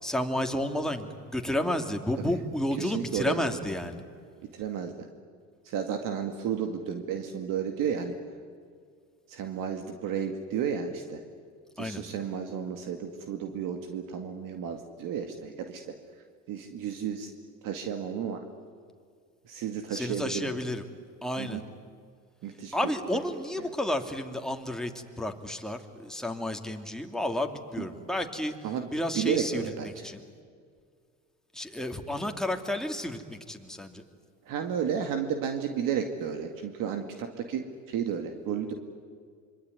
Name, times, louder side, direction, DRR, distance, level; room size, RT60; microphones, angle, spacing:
voice 1, 0.0-4.0 11.8-12.0 19.9-20.8 21.2-21.6 22.7-24.9 25.2-28.5 28.9-30.2 31.5-34.0, left 1 dB, ahead, 4 dB, 2.7 m, -31 dB
voice 2, 2.8-3.6 4.5-4.9 5.7-8.1 9.3-11.2 11.8-15.9 16.5-17.3 17.6-18.4 19.5-20.5 21.4-21.6 22.4-22.9 23.6-23.7 27.8-27.9 28.6-28.9 29.1-30.1 34.5-38.7, right 8 dB, 60° right, 5 dB, 2.3 m, -32 dB
26.0 x 23.5 x 9.7 m, 2.1 s
supercardioid pair, 90°, 37 cm